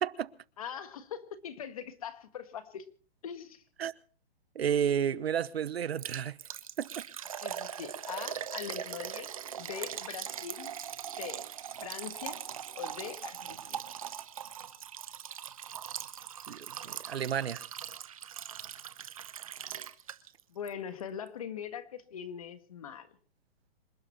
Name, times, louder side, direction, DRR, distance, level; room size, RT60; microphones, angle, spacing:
voice 1, 0.0-0.3 3.8-3.9 4.5-6.4 6.8-7.0 16.5-17.6, right 8 dB, 75° right, 1.1 m, -31 dB
voice 2, 0.6-2.9 3.2-3.6 7.4-9.3 9.6-10.7 11.1-11.4 11.7-12.4 12.7-13.8 20.5-23.1, left 8 dB, 35° left, 1.6 m, -42 dB
Liquid, 6.0-20.4 20.7-20.8 21.3-21.4, right 9 dB, 35° right, 0.9 m, -41 dB
27.0 x 11.5 x 4.3 m
hypercardioid pair, 180°, 31 cm